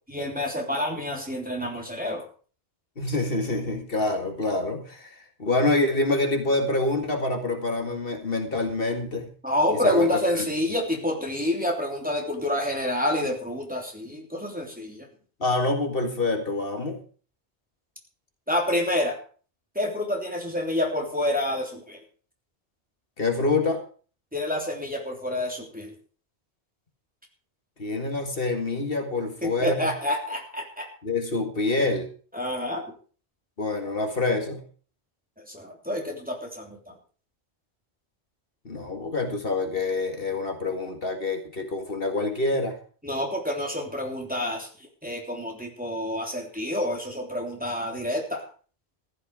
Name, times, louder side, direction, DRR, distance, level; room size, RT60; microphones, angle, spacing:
voice 1, 0.1-2.2 9.4-15.1 18.5-19.2 19.7-22.0 24.3-25.9 29.4-30.9 32.3-32.9 35.4-36.9 43.0-44.7 45.0-48.4, left 1 dB, 10° right, 0 dB, 3.3 m, -28 dB
voice 2, 3.0-9.3 9.7-10.4 15.4-17.0 23.2-23.8 27.8-29.9 31.0-32.1 33.6-34.6 38.7-42.8, left 2 dB, 60° left, 4 dB, 2.2 m, -26 dB
15.0 x 11.5 x 4.9 m, 0.41 s
omnidirectional pair, 1.1 m